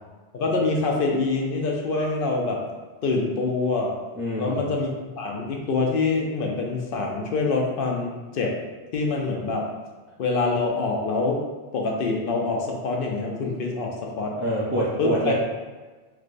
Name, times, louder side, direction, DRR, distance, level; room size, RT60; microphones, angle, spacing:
voice 1, 0.3-2.6 3.0-4.0 4.4-4.9 5.2-8.6 8.9-9.7 10.2-11.4 11.7-14.3 15.0-15.3, left 3 dB, 60° left, 0 dB, 0.7 m, -25 dB
voice 2, 4.2-4.7 14.4-15.3, right 1 dB, 20° right, -8 dB, 0.4 m, -26 dB
4.6 x 2.1 x 2.5 m, 1.3 s
omnidirectional pair, 1.2 m